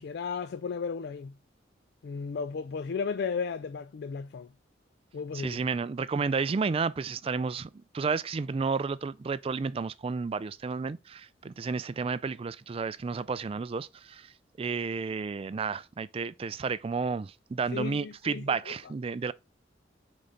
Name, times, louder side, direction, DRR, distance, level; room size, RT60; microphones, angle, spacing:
voice 1, 0.0-1.3 2.0-4.5 5.1-5.6 17.7-18.6, left 5 dB, 60° left, 0.3 m, -34 dB
voice 2, 5.3-7.7 7.9-14.3 14.6-19.3, right 4 dB, 30° right, 0.3 m, -31 dB
6.7 x 4.1 x 3.8 m
head